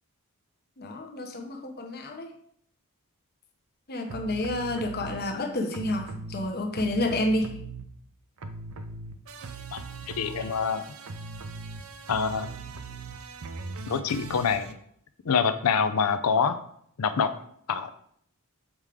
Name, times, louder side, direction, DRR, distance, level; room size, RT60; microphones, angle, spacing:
voice 1, 0.8-2.3 3.9-7.6, left 1 dB, 45° left, 4 dB, 0.9 m, -29 dB
sound 1, 4.1-5.2 5.7-8.1 8.4-14.7, right 4 dB, 70° right, 0.6 m, -40 dB
voice 2, 10.1-10.8 12.1-12.5 13.9-14.7 15.2-16.6 17.0-17.3 17.7-17.9, left 6 dB, 85° left, 11 dB, 0.5 m, -25 dB
7.3 x 4.8 x 3.5 m, 0.66 s
head